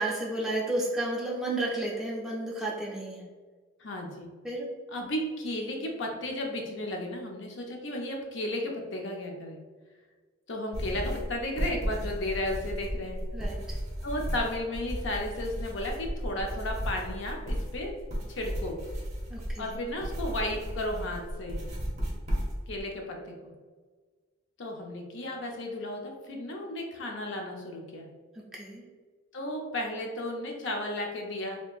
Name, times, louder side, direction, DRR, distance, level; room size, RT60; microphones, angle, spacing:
voice 1, 0.0-3.3 4.4-4.7 13.3-13.8 19.3-19.7 28.5-28.8, right 2 dB, 5° right, -4 dB, 0.5 m, -32 dB
voice 2, 3.8-4.3 4.9-9.6 10.5-13.2 14.0-17.9 18.3-18.8 19.6-21.6 22.7-23.5 24.6-28.1 29.3-31.6, left 1 dB, 60° left, 1 dB, 0.6 m, -34 dB
sound 1, 10.7-22.8, equal, 35° right, 0.9 m, -34 dB
4.4 x 2.8 x 2.3 m, 1.4 s
head